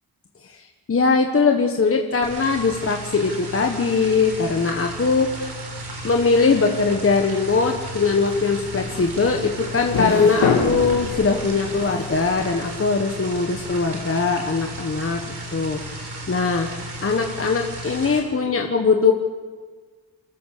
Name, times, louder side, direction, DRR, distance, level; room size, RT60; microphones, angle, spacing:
voice 1, 0.9-5.3 6.0-16.7 17.0-19.1, left 4 dB, 35° left, 3 dB, 1.4 m, -21 dB
sound 1, 2.2-18.2, right 1 dB, 80° right, 4.7 m, -34 dB
sound 2, 8.1-12.8, left 5 dB, 80° left, 2.6 m, -27 dB
28.5 x 14.5 x 6.8 m, 1.5 s
wide cardioid pair, 130°, 38 cm